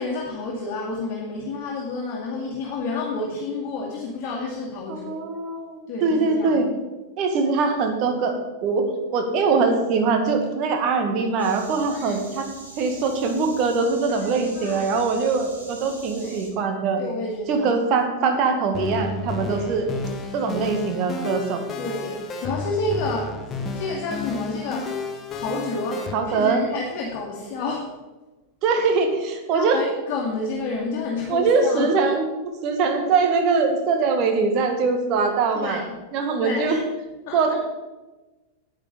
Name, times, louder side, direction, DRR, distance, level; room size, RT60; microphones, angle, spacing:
voice 1, 0.0-5.2 5.9-6.6 11.9-12.2 14.1-15.3 16.1-16.4 17.0-17.7 19.4-19.7 20.5-20.7 21.8-25.0 25.3-27.9 29.5-31.9 35.5-35.9 36.4-36.8 37.3-37.5, left 3 dB, 40° left, -3 dB, 2.3 m, -30 dB
voice 2, 4.9-6.7 7.2-8.4 8.6-8.9 9.1-12.5 12.8-17.0 17.5-19.9 20.3-21.6 26.1-26.6 28.6-29.8 31.3-32.3 32.6-35.9 36.1-36.8 37.3-37.5, right 4 dB, 40° right, 4 dB, 2.0 m, -22 dB
sound 1, 11.4-16.5, right 1 dB, 80° right, 3.0 m, -43 dB
sound 2, 18.7-26.1, left 4 dB, 25° left, 1.3 m, -32 dB
9.9 x 9.2 x 5.3 m, 1.1 s
figure-of-eight pair, 90°, 0 cm